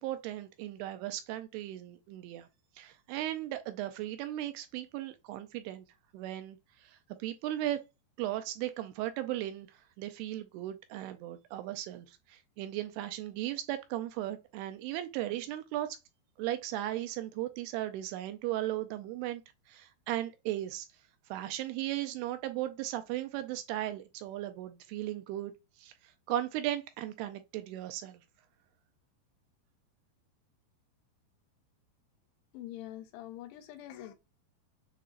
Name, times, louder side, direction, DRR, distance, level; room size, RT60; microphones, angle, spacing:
voice 1, 0.0-2.5 2.8-5.9 6.1-7.8 8.2-16.0 16.4-19.4 19.7-20.9 21.3-28.2, right 13 dB, 85° right, 2.4 m, -37 dB
voice 2, 32.5-34.1, left 13 dB, 80° left, 2.7 m, -44 dB
7.5 x 2.8 x 2.4 m
omnidirectional pair, 4.9 m